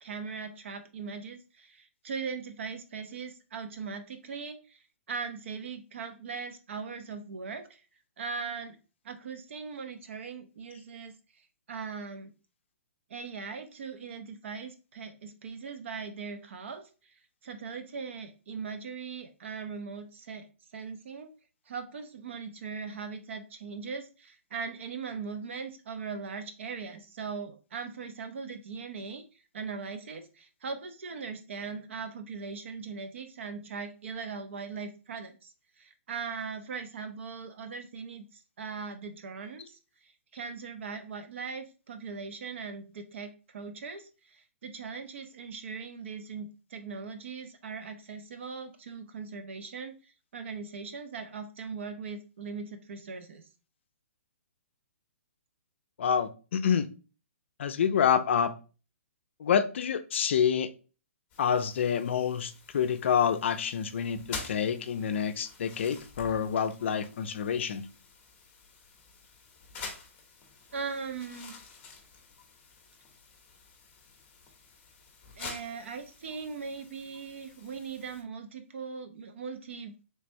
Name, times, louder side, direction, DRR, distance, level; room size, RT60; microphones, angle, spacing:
voice 1, 0.0-7.8 8.2-8.8 9.0-11.1 11.7-12.3 13.1-20.5 20.7-21.3 21.7-29.2 29.5-49.9 50.3-53.4 70.7-71.6 75.4-79.9, right 5 dB, 60° right, 0.6 m, -40 dB
voice 2, 56.0-56.9 57.6-58.5 59.4-60.7 61.4-67.8, left 7 dB, 60° left, 0.4 m, -27 dB
sound 1, 61.3-78.2, left 4 dB, 20° left, 0.8 m, -48 dB
3.3 x 3.2 x 2.6 m
hypercardioid pair, 155°, 7 cm